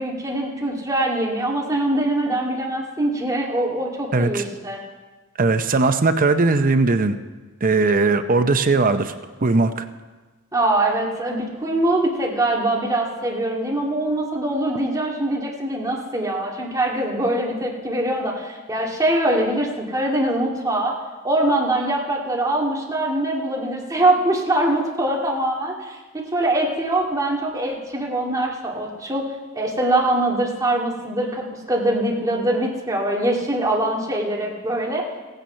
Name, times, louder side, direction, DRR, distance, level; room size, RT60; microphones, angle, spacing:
voice 1, 0.0-4.8 10.5-21.0 21.2-29.3 29.5-35.0, right 1 dB, 15° right, -2 dB, 2.1 m, -23 dB
voice 2, 4.1-4.4 5.4-7.2 7.6-9.1 9.4-9.8, right 3 dB, 40° right, 9 dB, 0.6 m, -19 dB
16.0 x 9.1 x 5.6 m, 1.3 s
head